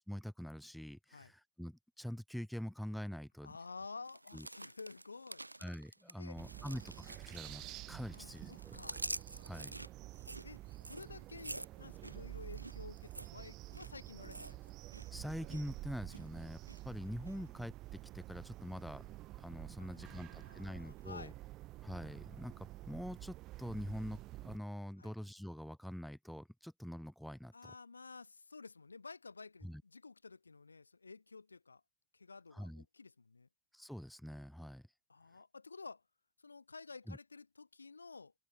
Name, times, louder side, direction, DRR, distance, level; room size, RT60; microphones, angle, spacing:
voice 1, 0.1-3.5 4.3-4.5 5.6-8.8 9.5-9.8 15.1-19.0 19.4-21.3 21.8-27.5 29.6-29.8 32.5-32.8 33.7-34.9 37.1-37.2, equal, ahead, 0.7 m, -45 dB
voice 2, 3.4-5.4 6.2-6.8 8.1-9.0 10.4-14.7 17.3-17.4 19.8-21.3 25.0-25.1 27.5-31.8 32.1-33.5 35.1-36.0 36.4-38.3, left 4 dB, 80° left, 0.4 m, -52 dB
sound 1, 4.1-7.9 8.1-15.1 15.3-15.7 16.1-16.8 17.3-17.4, right 2 dB, 85° right, 0.5 m, -48 dB
sound 2, 6.3-24.6, right 17 dB, 35° right, 1.2 m, -50 dB
open air
figure-of-eight pair, 90°, 0 cm